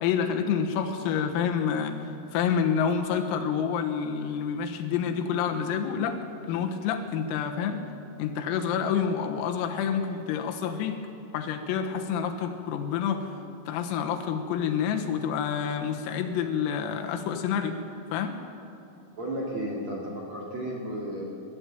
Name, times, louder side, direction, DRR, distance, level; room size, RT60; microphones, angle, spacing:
voice 1, 0.0-6.2 6.4-7.8 8.2-11.0 11.3-13.3 13.7-17.8 18.1-18.4, left 7 dB, 85° left, 5 dB, 4.1 m, -28 dB
voice 2, 19.1-21.2, right 1 dB, 40° right, -2 dB, 2.9 m, -33 dB
21.5 x 13.0 x 9.2 m, 2.7 s
omnidirectional pair, 5.9 m